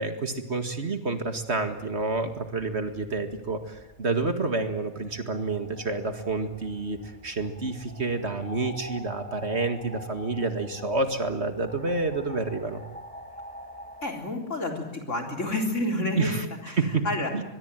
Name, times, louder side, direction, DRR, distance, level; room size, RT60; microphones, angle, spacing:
voice 1, 0.0-12.8 16.2-16.5 16.8-17.0 17.3-17.4, right 3 dB, 50° right, 8 dB, 2.2 m, -29 dB
sound 1, 0.9-14.1, left 1 dB, 5° left, 2.9 m, -47 dB
voice 2, 14.0-16.3 16.6-17.3, left 2 dB, 55° left, 3 dB, 4.2 m, -29 dB
23.0 x 22.5 x 9.2 m, 0.91 s
omnidirectional pair, 1.5 m